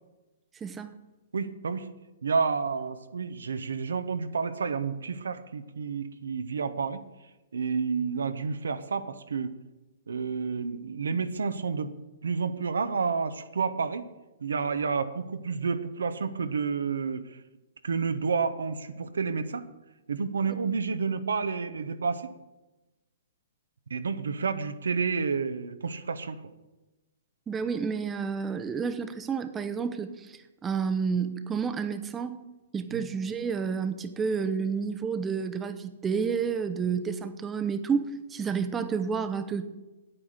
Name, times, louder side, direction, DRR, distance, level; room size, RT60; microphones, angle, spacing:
voice 1, 0.6-0.9 27.5-32.4 32.7-39.7, right 6 dB, 15° right, 10 dB, 0.7 m, -30 dB
voice 2, 1.3-1.9 2.2-7.0 7.5-9.5 10.1-11.9 12.2-14.1 14.4-17.2 17.8-19.7 20.1-22.3 23.9-26.4 32.9-33.0, right 5 dB, 80° right, 11 dB, 0.8 m, -30 dB
8.8 x 8.6 x 6.5 m, 1.1 s
hypercardioid pair, 130°, 0 cm